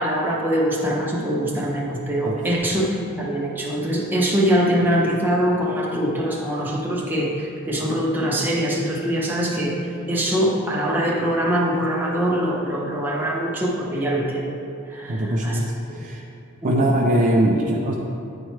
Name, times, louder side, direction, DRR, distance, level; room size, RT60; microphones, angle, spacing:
voice 1, 0.0-2.9 3.2-9.8 10.1-14.5 14.9-15.6 16.6-16.9, equal, 10° right, -4 dB, 0.8 m, -23 dB
voice 2, 15.1-16.2 16.6-17.9, right 1 dB, 35° right, -1 dB, 0.4 m, -21 dB
9.8 x 4.4 x 3.2 m, 2.7 s
head